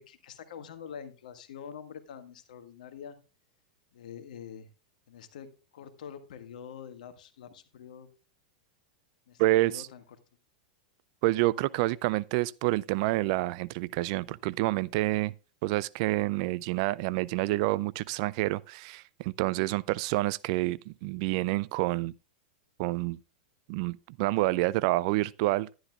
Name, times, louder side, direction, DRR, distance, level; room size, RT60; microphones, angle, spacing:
voice 1, 0.0-3.2 3.9-4.7 5.1-8.1 9.3-10.0, left 8 dB, 75° left, 1.7 m, -45 dB
voice 2, 9.4-9.9 11.2-15.3 15.6-22.1 22.8-23.2 23.7-25.7, right 19 dB, 55° right, 0.4 m, -28 dB
12.0 x 11.0 x 2.4 m
hypercardioid pair, 105°, 4 cm